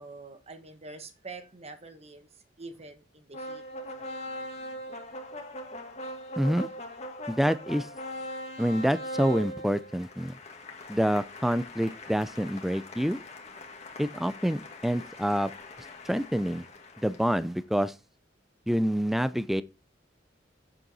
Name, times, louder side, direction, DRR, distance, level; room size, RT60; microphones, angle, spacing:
voice 1, 0.0-2.3 2.6-3.6 4.0-4.8, right 3 dB, 35° right, 1.4 m, -46 dB
sound 1, 3.3-17.5, equal, 35° left, 1.7 m, -41 dB
voice 2, 6.4-6.7 7.3-7.9 8.6-10.3 10.9-13.2 14.0-15.5 16.0-16.6 17.0-17.9 18.7-19.6, equal, ahead, 0.4 m, -27 dB
8.0 x 7.5 x 4.2 m
head